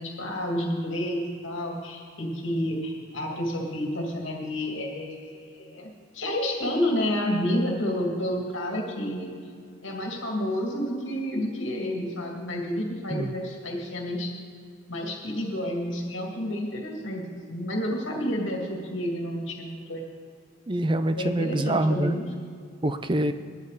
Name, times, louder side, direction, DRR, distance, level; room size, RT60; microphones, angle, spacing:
voice 1, 0.0-9.3 9.8-14.3 14.9-20.0 21.1-22.3, left 1 dB, 75° left, 0 dB, 2.4 m, -30 dB
voice 2, 20.7-22.2 22.8-23.3, right 1 dB, 25° right, 10 dB, 0.6 m, -25 dB
20.0 x 9.5 x 4.1 m, 2.3 s
head